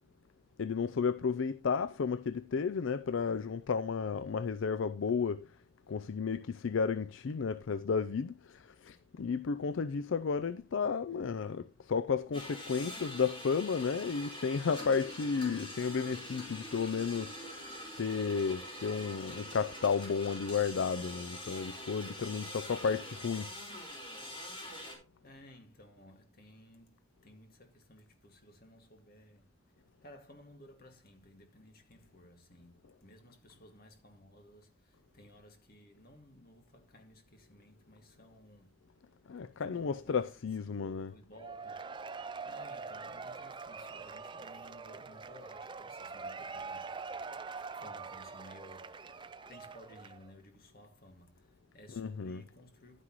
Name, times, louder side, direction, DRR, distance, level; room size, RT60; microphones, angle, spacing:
voice 1, 0.6-5.5 5.9-17.4 18.0-23.5 39.3-41.1 51.9-52.4, left 5 dB, 65° left, 0.4 m, -33 dB
sound 1, 12.3-24.9, equal, 25° left, 4.2 m, -45 dB
voice 2, 25.2-29.5 30.0-38.7 39.7-40.3 40.6-42.0 42.4-47.1 47.7-53.0, left 1 dB, 45° left, 2.1 m, -57 dB
Cheering / Applause / Crowd, 41.4-50.3, right 4 dB, 20° right, 0.4 m, -44 dB
11.5 x 9.6 x 3.1 m
head